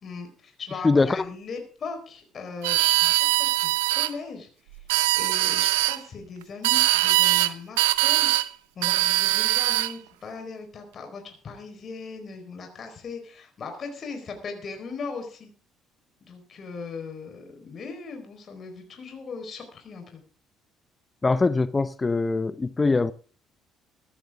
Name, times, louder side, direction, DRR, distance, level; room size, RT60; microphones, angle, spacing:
voice 1, 0.0-4.8 5.1-8.3 8.8-15.5 16.2-20.2, left 4 dB, 50° left, 4.4 m, -39 dB
voice 2, 0.8-1.3 21.2-23.1, left 3 dB, 25° left, 0.8 m, -22 dB
sound 1, 2.6-4.1 4.8-6.0 6.6-7.5 7.8-8.5 8.8-9.9, right 18 dB, 90° right, 0.7 m, -22 dB
16.0 x 14.0 x 3.6 m
hypercardioid pair, 60°, 0 cm